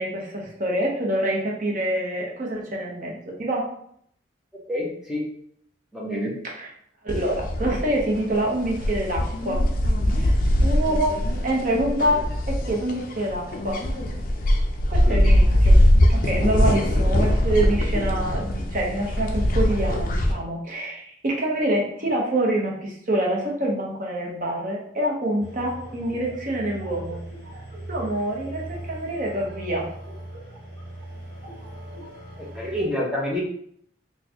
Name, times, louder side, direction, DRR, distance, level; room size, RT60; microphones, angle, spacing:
voice 1, 0.0-3.6 6.4-6.7 7.0-9.6 10.1-11.2 11.4-13.8 14.9-15.8 16.1-27.2 27.9-29.9, right 1 dB, 45° right, -2 dB, 0.8 m, -26 dB
voice 2, 4.5-5.2 5.9-6.3 15.1-15.2 32.5-33.4, left 1 dB, 5° right, -4 dB, 0.8 m, -27 dB
sound 1, 7.1-20.3, left 1 dB, 45° left, 0.4 m, -21 dB
sound 2, 25.4-32.9, right 1 dB, 65° right, 1.3 m, -39 dB
4.2 x 2.3 x 2.8 m, 0.67 s
head